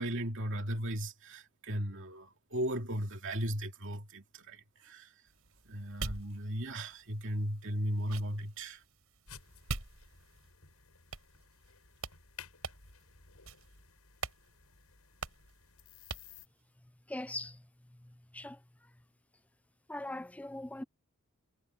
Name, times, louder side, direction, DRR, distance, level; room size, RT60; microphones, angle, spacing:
voice 1, 0.0-5.1 5.7-8.8, equal, 60° right, 2.6 m, -36 dB
sound 1, 5.3-10.6 11.1-11.7 12.0-12.2 12.6-13.0 13.4-13.8 14.2-14.4 14.7-14.8 15.2-15.5 16.1-16.4, right 3 dB, 75° right, 5.4 m, -44 dB
sound 2, 9.3-16.5, left 7 dB, 80° left, 7.1 m, -56 dB
voice 2, 17.1-18.9 19.9-20.8, left 1 dB, 5° left, 0.4 m, -42 dB
head